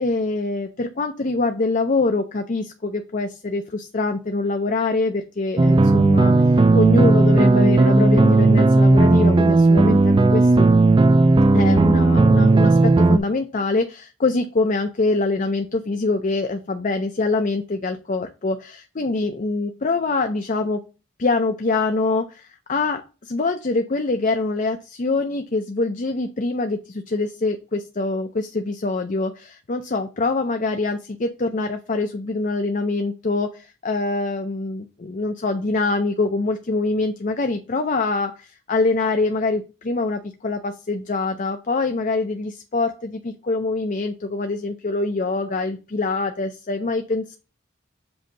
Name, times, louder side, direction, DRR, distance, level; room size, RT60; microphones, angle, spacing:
voice 1, 0.0-6.3 6.7-10.7 11.5-20.8 21.2-47.4, left 3 dB, 40° left, 7 dB, 0.5 m, -24 dB
sound 1, 5.6-13.2, right 2 dB, 25° right, 0.4 m, -15 dB
7.7 x 2.8 x 5.4 m, 0.31 s
head